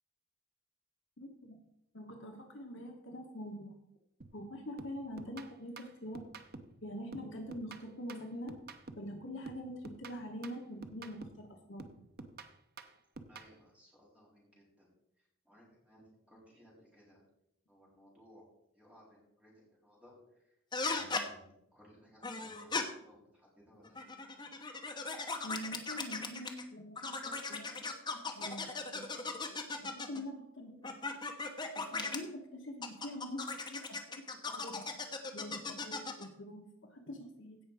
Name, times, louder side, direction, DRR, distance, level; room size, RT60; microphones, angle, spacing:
voice 1, 1.2-1.6 1.9-3.8 4.3-6.2 6.8-8.6 9.0-11.9 25.4-30.9 31.4-31.5 31.7-34.8 35.3-37.6, equal, 55° left, 3 dB, 1.3 m, -45 dB
sound 1, 4.2-4.5 4.8-6.8 7.1-9.2 9.5-11.5 11.8-13.5, right 3 dB, 45° right, 0.8 m, -50 dB
voice 2, 13.3-14.9 15.2-17.2 17.7-18.5 18.7-20.6 20.9-24.0, equal, 5° right, -5 dB, 4.1 m, -61 dB
sound 2, 20.7-21.3 22.2-22.8 23.8-26.6 27.0-30.2 30.8-32.2 32.8-36.3, left 3 dB, 20° left, 1.0 m, -38 dB
16.5 x 5.8 x 4.9 m, 0.81 s
head